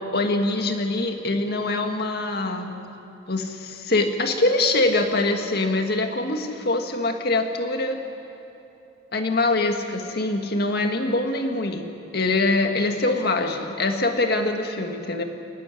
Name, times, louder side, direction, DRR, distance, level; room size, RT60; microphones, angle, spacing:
voice 1, 0.1-2.7 3.3-8.0 9.1-11.9 12.1-15.2, left 2 dB, 60° left, 4 dB, 1.9 m, -24 dB
29.0 x 11.5 x 9.9 m, 2.9 s
head